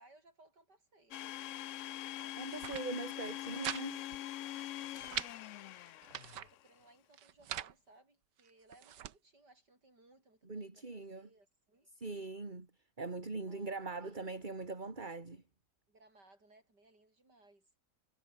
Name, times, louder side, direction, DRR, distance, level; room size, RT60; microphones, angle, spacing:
voice 1, 0.0-2.4 2.8-4.2 4.9-6.0 6.4-11.9 13.4-14.4 15.9-17.7, right 2 dB, 70° right, 8.3 m, -65 dB
Domestic sounds home sounds, 1.1-6.6, left 14 dB, 75° left, 0.7 m, -43 dB
voice 2, 2.4-4.0 10.4-11.3 12.0-12.7 13.0-15.4, right 3 dB, 25° right, 2.6 m, -41 dB
sound 1, 2.4-2.9 3.2-3.8 4.1-4.2 4.6-5.3 5.9-6.5 7.1-7.7 8.4-9.2, right 11 dB, 90° right, 1.7 m, -43 dB
omnidirectional pair, 1.8 m